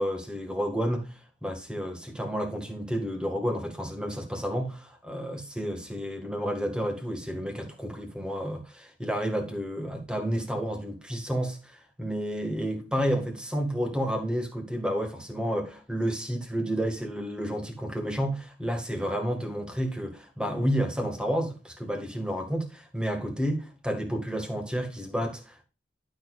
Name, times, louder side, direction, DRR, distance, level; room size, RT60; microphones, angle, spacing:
voice 1, 0.0-25.6, equal, 5° right, 1.8 m, -31 dB
12.0 x 6.3 x 2.5 m
head